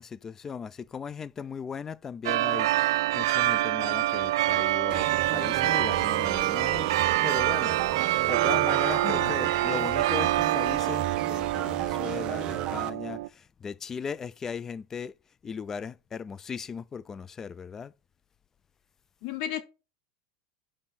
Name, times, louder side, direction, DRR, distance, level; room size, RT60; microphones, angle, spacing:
voice 1, 0.0-2.7 3.1-6.9 7.2-7.8 8.0-15.1 15.4-17.9, left 6 dB, 20° left, 0.3 m, -37 dB
sound 1, 2.2-13.3, right 15 dB, 80° right, 0.4 m, -26 dB
sound 2, 4.9-12.9, right 11 dB, 35° right, 0.7 m, -35 dB
voice 2, 9.0-9.3 19.2-19.6, left 12 dB, 55° left, 0.9 m, -33 dB
6.6 x 5.5 x 4.2 m
supercardioid pair, 145°, 2 cm